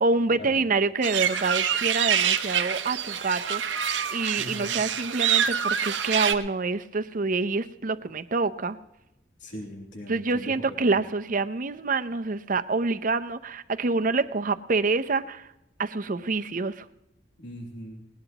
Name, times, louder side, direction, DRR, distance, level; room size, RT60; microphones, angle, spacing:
voice 1, 0.0-3.6 4.1-8.8 10.1-15.5 15.8-16.9, right 3 dB, 50° right, 10 dB, 0.7 m, -27 dB
sound 1, 1.0-6.3, right 8 dB, 90° right, 1.0 m, -26 dB
voice 2, 4.4-4.7 9.4-11.0 17.4-18.0, equal, 80° left, 0 dB, 3.1 m, -40 dB
19.5 x 19.0 x 3.0 m, 0.88 s
head